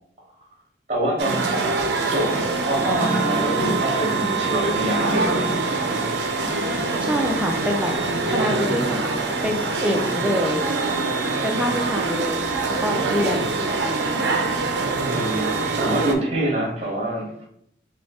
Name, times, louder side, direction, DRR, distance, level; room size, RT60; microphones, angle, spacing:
voice 1, 0.9-1.5 2.1-2.4 2.6-5.6 15.1-17.5, right 1 dB, 35° right, -2 dB, 1.1 m, -25 dB
sound 1, 1.2-16.1, right 3 dB, 75° right, 0.5 m, -24 dB
sound 2, 2.1-10.6, equal, 35° left, 0.9 m, -34 dB
voice 2, 7.0-7.9 8.3-9.2 9.4-10.6 11.4-12.5 12.8-14.3, left 1 dB, 5° right, 2 dB, 0.4 m, -26 dB
3.8 x 2.3 x 3.5 m, 0.73 s
head